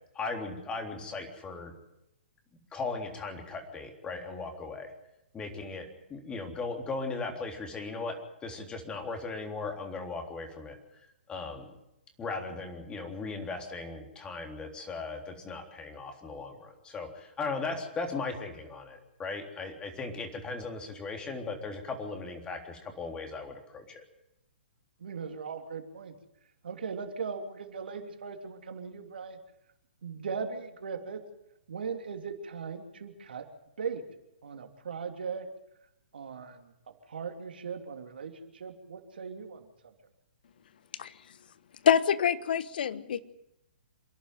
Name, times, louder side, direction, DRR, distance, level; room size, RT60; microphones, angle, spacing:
voice 1, 0.2-1.7 2.7-4.9 5.3-10.8 11.3-11.7 12.2-24.0, left 3 dB, 15° left, 3 dB, 3.6 m, -37 dB
voice 2, 25.0-26.1 26.6-29.4 30.0-31.2 31.7-33.5 33.8-34.0 34.4-35.5 36.1-39.7, right 5 dB, 70° right, 5 dB, 3.1 m, -39 dB
voice 3, 41.8-43.2, left 8 dB, 60° left, 15 dB, 1.3 m, -25 dB
27.0 x 11.5 x 9.3 m, 0.88 s
figure-of-eight pair, 125°, 6 cm